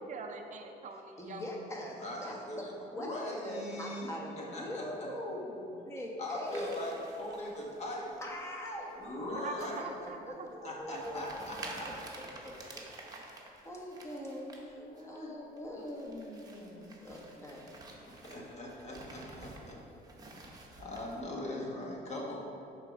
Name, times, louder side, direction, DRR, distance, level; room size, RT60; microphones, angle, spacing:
voice 1, 0.1-1.5 9.3-11.0, right 4 dB, 45° right, 4 dB, 0.5 m, -44 dB
voice 2, 1.2-3.1 3.4-6.8 8.2-8.9 9.6-11.2 12.4-12.5 13.1-13.2 13.6-14.5 15.0-17.7, left 1 dB, 15° left, -2 dB, 1.1 m, -42 dB
voice 3, 2.0-4.1 4.3-4.8 6.2-8.2 9.0-9.9 10.6-11.9 13.4-13.7 14.8-15.3 18.1-19.8 20.4-20.5 20.8-22.4, left 1 dB, 40° left, -2 dB, 1.4 m, -40 dB
sound 1, 6.5-8.2 8.7-9.1 9.6-9.8 10.3-10.4 10.9-14.6 15.0-15.2 15.6-21.2, right 2 dB, 20° right, 0.9 m, -50 dB
6.3 x 3.7 x 5.2 m, 2.9 s
cardioid pair, 110°, 17 cm